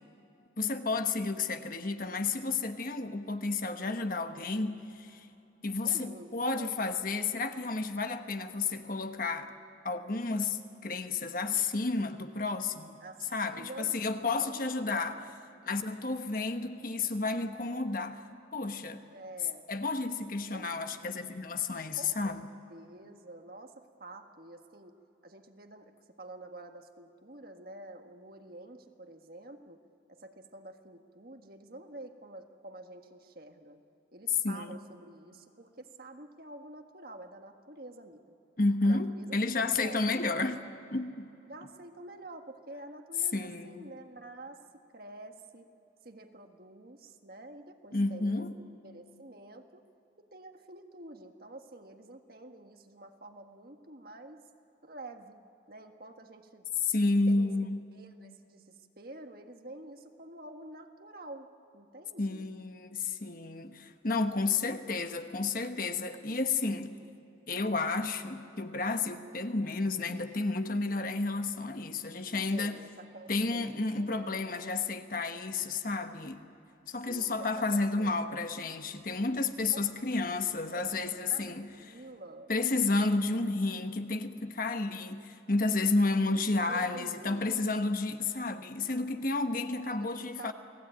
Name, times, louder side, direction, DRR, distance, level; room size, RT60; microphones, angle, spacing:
voice 1, 0.6-5.3 5.6-9.5 9.8-13.0 13.3-15.2 15.7-18.2 18.5-19.0 19.7-22.4 34.4-34.8 38.6-40.6 40.9-41.3 43.3-43.9 47.9-48.5 56.8-57.9 62.2-66.9 67.5-72.8 73.3-76.4 76.9-81.7 82.5-90.5, left 3 dB, 45° left, 1.2 m, -31 dB
voice 2, 5.8-6.8 13.0-15.6 19.1-19.6 20.5-21.2 22.0-22.4 22.7-25.0 25.2-29.8 30.1-33.8 34.1-38.2 38.8-40.0 40.6-40.7 41.5-45.7 46.0-49.8 50.2-54.4 54.8-55.4 55.7-56.6 57.3-57.5 57.9-61.5 61.7-62.5 72.5-74.4 77.1-78.2 79.7-82.5 86.3-87.5 89.8-90.5, right 2 dB, 50° right, 1.7 m, -49 dB
29.0 x 19.5 x 9.1 m
head